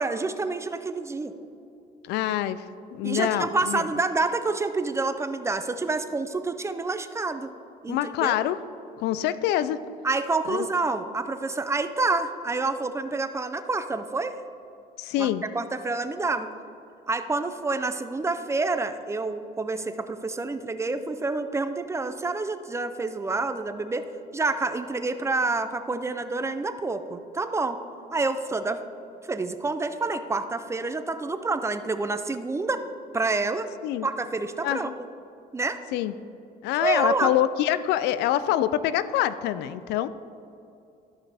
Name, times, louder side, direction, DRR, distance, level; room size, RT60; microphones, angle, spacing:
voice 1, 0.0-1.3 3.0-7.5 7.8-8.3 10.0-14.3 15.2-15.3 15.5-16.5 17.1-24.0 24.3-27.8 28.1-28.8 29.3-32.8 33.1-33.7 34.0-34.9 35.5-35.8 36.8-37.3, right 3 dB, 15° right, 10 dB, 0.5 m, -28 dB
voice 2, 2.0-2.6 2.9-3.8 7.9-8.6 9.0-9.8 10.5-10.7 15.0-15.4 33.8-34.1 34.6-34.9 35.9-36.1 36.6-40.1, left 12 dB, 85° left, 15 dB, 0.4 m, -25 dB
13.5 x 5.8 x 3.4 m, 2.6 s
cardioid pair, 110°, 17 cm